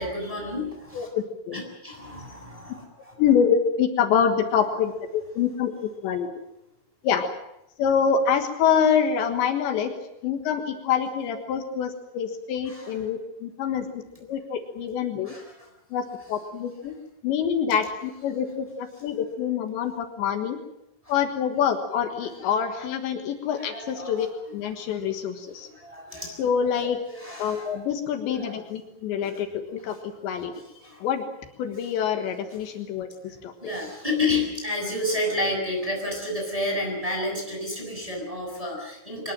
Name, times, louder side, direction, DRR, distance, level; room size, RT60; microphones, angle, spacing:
voice 1, 0.0-1.1 1.5-3.1 12.6-13.0 13.7-13.8 15.2-15.7 21.0-21.1 23.6-24.5 25.7-26.4 27.1-27.7 28.3-28.5 29.2-29.4 30.1-30.2 30.8-31.0 33.6-39.3, left 2 dB, 5° right, 0 dB, 6.7 m, -31 dB
voice 2, 0.9-1.6 3.2-6.3 7.0-7.3 7.8-9.9 10.2-13.9 14.2-15.3 15.9-16.0 16.3-17.0 17.2-20.6 21.1-24.3 24.5-25.7 26.4-27.0 27.4-30.5 31.0-31.2 31.6-33.5, left 7 dB, 75° left, 6 dB, 3.7 m, -26 dB
23.5 x 21.0 x 7.5 m, 0.87 s
omnidirectional pair, 5.3 m